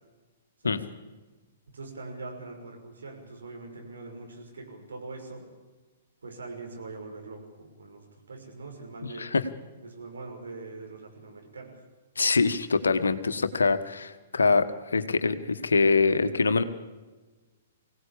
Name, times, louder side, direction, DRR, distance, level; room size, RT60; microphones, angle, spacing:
voice 1, 1.7-5.5 6.2-9.3 9.8-11.7, right 3 dB, 75° right, 2 dB, 6.0 m, -42 dB
voice 2, 12.2-16.6, left 4 dB, 75° left, 10 dB, 1.5 m, -24 dB
24.0 x 17.5 x 8.6 m, 1.3 s
figure-of-eight pair, 115°, 0 cm